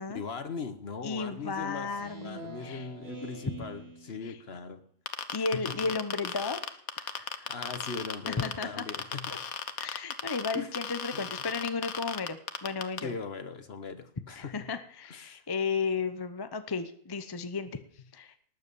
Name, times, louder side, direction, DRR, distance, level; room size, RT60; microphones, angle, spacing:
voice 1, 0.1-4.8 5.5-5.8 7.5-9.4 10.5-10.7 11.1-11.4 13.0-14.7 15.1-15.4, left 5 dB, 50° left, 10 dB, 1.3 m, -40 dB
voice 2, 1.0-2.9 4.2-4.3 5.3-6.6 7.0-7.5 8.3-8.9 9.8-13.1 14.4-17.8 18.1-18.3, left 4 dB, 25° left, 10 dB, 0.6 m, -34 dB
Speech synthesizer, 1.4-4.4, right 2 dB, 70° right, 3.4 m, -45 dB
sound 1, 5.1-13.0, left 7 dB, 85° left, 1.5 m, -35 dB
19.0 x 8.5 x 7.0 m, 0.65 s
omnidirectional pair, 1.5 m